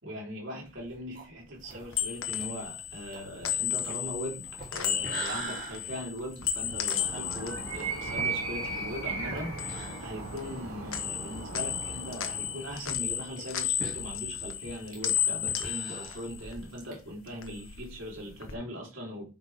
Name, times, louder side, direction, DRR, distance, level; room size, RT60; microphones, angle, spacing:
voice 1, 0.0-19.3, equal, 65° right, 3.7 m, -40 dB
sound 1, 0.6-10.9 11.2-11.3 11.6-11.7 12.4-16.9, right 2 dB, 40° right, 2.9 m, -45 dB
sound 2, 1.6-8.9 9.2-10.6 10.9-16.9 17.2-18.5, left 9 dB, 80° left, 1.3 m, -34 dB
Animal, 6.8-12.7, right 3 dB, 85° right, 2.6 m, -37 dB
9.6 x 6.1 x 3.5 m
head